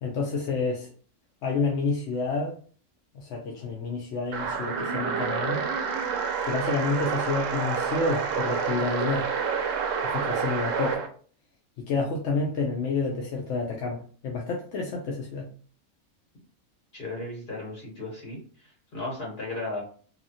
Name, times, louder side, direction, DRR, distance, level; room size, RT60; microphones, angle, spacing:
voice 1, 0.0-0.9 1.4-2.6 3.1-5.6 6.4-9.3 10.0-11.0 11.8-15.5, left 4 dB, 65° left, 0 dB, 0.7 m, -29 dB
sound 1, 4.3-11.1, right 6 dB, 70° right, 0.8 m, -28 dB
voice 2, 16.9-19.8, left 2 dB, 45° left, -3 dB, 1.5 m, -35 dB
2.8 x 2.4 x 2.6 m, 0.43 s
omnidirectional pair, 1.5 m